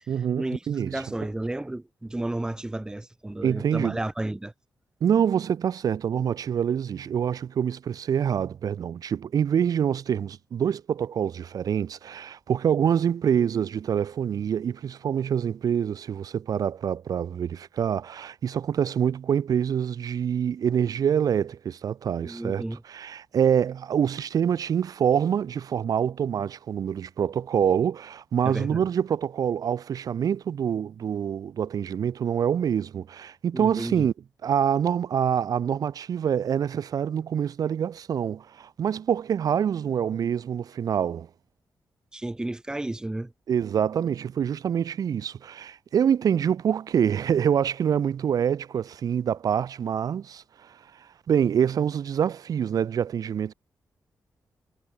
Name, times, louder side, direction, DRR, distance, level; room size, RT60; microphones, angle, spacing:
voice 1, 0.1-1.0 3.4-4.0 5.0-22.6 22.9-34.1 34.4-41.3 43.5-50.8 51.3-53.5, right 8 dB, 70° right, 4.8 m, -26 dB
voice 2, 0.9-4.5 22.2-22.8 28.4-28.8 33.5-34.1 42.1-43.3, right 1 dB, 10° right, 5.0 m, -32 dB
wide cardioid pair, 170°, 7 cm